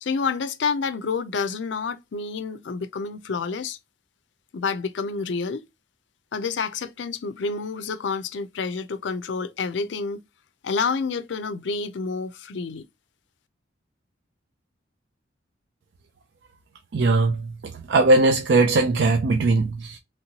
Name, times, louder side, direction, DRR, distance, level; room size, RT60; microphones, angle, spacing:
voice 1, 0.0-3.8 4.5-5.7 6.3-10.2 10.6-12.8, left 5 dB, 70° left, 0.5 m, -28 dB
voice 2, 16.9-20.0, right 2 dB, 65° right, 0.4 m, -20 dB
3.0 x 3.0 x 2.7 m
head